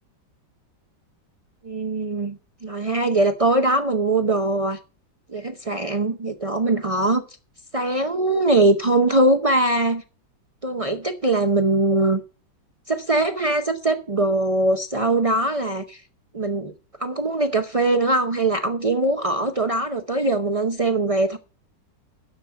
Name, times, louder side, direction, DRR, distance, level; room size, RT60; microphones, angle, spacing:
voice 1, 1.6-4.8 5.3-7.2 7.7-10.0 10.6-12.2 12.9-16.0 16.3-16.7 17.0-21.4, right 2 dB, 65° right, 0.3 m, -21 dB
11.0 x 7.1 x 7.0 m
omnidirectional pair, 2.0 m